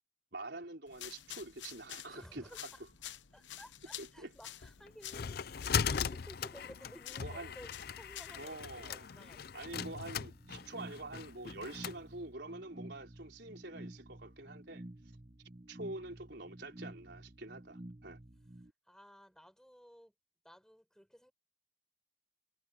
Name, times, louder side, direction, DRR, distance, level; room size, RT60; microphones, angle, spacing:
voice 1, 0.3-2.5 4.0-4.3 7.2-7.5 8.4-9.1 9.5-14.8 15.7-18.2, right 2 dB, 60° right, 4.3 m, -46 dB
sound 1, 0.9-8.5, left 12 dB, 70° left, 0.9 m, -50 dB
voice 2, 2.1-2.8 3.3-9.7 18.9-20.1 20.4-21.3, equal, 5° left, 5.9 m, -55 dB
sound 2, 4.6-12.0, left 7 dB, 50° left, 0.5 m, -39 dB
sound 3, 9.7-18.7, right 1 dB, 30° right, 1.0 m, -51 dB
head